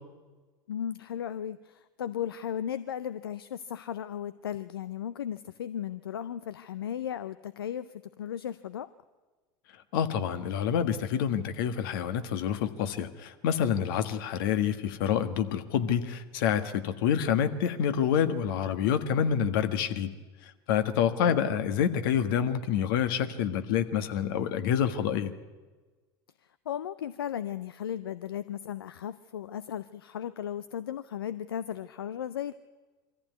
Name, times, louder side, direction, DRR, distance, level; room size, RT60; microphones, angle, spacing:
voice 1, 0.7-7.9 8.2-8.9 21.3-21.5 26.7-32.5, left 9 dB, 85° left, 14 dB, 0.6 m, -36 dB
voice 2, 9.9-20.1 20.7-25.3, left 8 dB, 70° left, 9 dB, 1.6 m, -27 dB
22.5 x 14.5 x 9.4 m, 1.3 s
hypercardioid pair, 80°, 12 cm